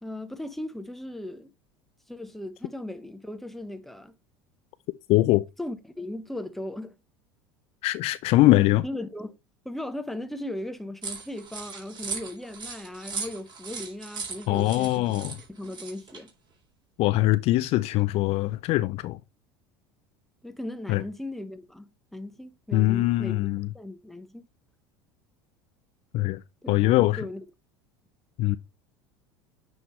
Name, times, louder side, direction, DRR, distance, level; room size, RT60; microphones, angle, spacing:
voice 1, 0.0-1.5 2.1-4.1 5.6-7.0 8.8-9.3 9.6-15.1 15.5-16.3 20.4-23.3 23.7-24.4 26.6-27.4, left 1 dB, ahead, 0.9 m, -37 dB
voice 2, 5.1-5.4 7.8-8.8 14.5-15.4 17.0-19.2 20.9-21.0 22.7-23.7 26.1-26.4 26.7-27.3 28.4-28.6, left 17 dB, 55° left, 0.4 m, -22 dB
sound 1, 11.0-16.3, right 5 dB, 35° right, 3.5 m, -38 dB
9.3 x 3.6 x 3.1 m
hypercardioid pair, 80°, 13 cm